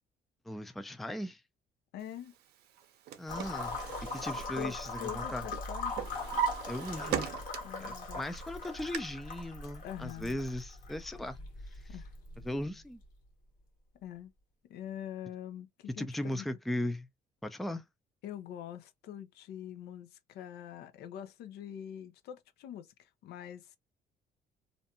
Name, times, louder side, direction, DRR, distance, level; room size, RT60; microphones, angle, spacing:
voice 1, 0.5-1.4 3.2-3.8 4.1-5.4 6.7-7.4 7.8-11.4 11.7-12.0 12.4-13.0 16.0-17.1 17.4-17.8, left 1 dB, ahead, 0.3 m, -38 dB
voice 2, 1.9-2.3 4.6-4.7 5.0-5.9 7.6-8.2 9.8-10.4 11.9-12.1 14.0-14.3 14.7-16.5 18.2-23.8, left 11 dB, 75° left, 0.5 m, -44 dB
Drawer open or close, 2.8-5.2 5.5-7.9 8.3-9.0, right 9 dB, 75° right, 0.6 m, -37 dB
Water filling a glass, 3.3-13.0, left 3 dB, 55° left, 1.3 m, -41 dB
2.6 x 2.2 x 2.7 m
cardioid pair, 110°, 17 cm